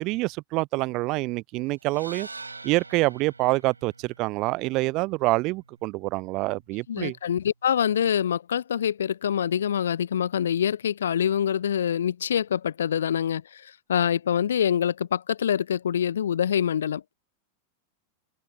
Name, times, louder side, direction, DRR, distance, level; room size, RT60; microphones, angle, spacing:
voice 1, 0.0-2.3 2.6-7.2, right 22 dB, 40° right, 0.4 m, -26 dB
sound 1, 1.8-6.0, right 3 dB, 80° right, 4.2 m, -45 dB
voice 2, 6.9-17.1, left 9 dB, 65° left, 0.9 m, -25 dB
figure-of-eight pair, 90°, 0 cm